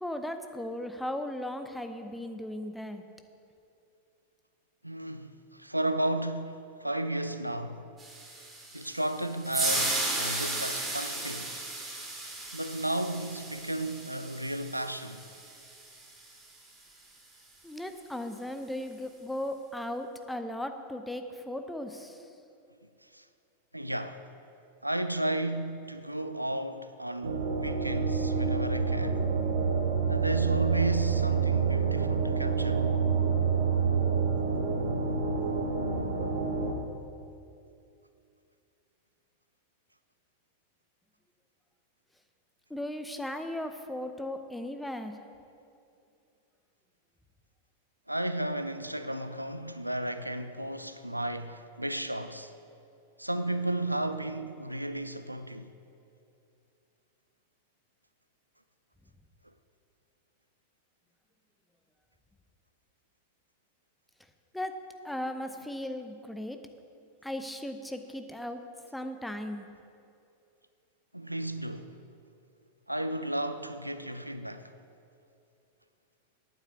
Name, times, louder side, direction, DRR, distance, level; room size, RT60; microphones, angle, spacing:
voice 1, 0.0-3.0 17.6-22.2 42.7-45.1 64.5-64.7 65.0-66.6 67.2-68.6 68.9-69.7, left 1 dB, 5° left, 0.8 m, -37 dB
voice 2, 4.8-7.9 8.7-11.5 12.5-15.2 23.0-23.3 23.7-24.2 24.8-29.2 30.1-32.9 48.1-52.5 53.2-55.7 71.1-71.9 72.9-74.7, right 1 dB, 85° right, 0.5 m, -33 dB
sound 1, 8.0-16.3, right 2 dB, 20° right, 2.7 m, -35 dB
sound 2, 27.2-36.7, right 5 dB, 70° right, 1.1 m, -27 dB
9.2 x 8.0 x 7.1 m
figure-of-eight pair, 90°, 0 cm